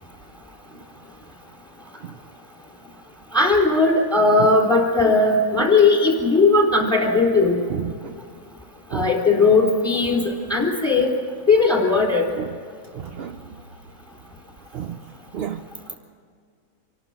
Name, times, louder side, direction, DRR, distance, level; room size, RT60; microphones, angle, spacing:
voice 1, 3.3-7.6 8.9-11.1 11.5-12.3, left 3 dB, 5° left, 1 dB, 3.9 m, -18 dB
voice 2, 7.7-8.2 8.9-9.1 12.4-12.5 12.9-13.4 14.7-15.0 15.3-15.6, right 9 dB, 55° right, 9 dB, 0.7 m, -31 dB
26.5 x 12.0 x 9.0 m, 2.2 s
omnidirectional pair, 1.5 m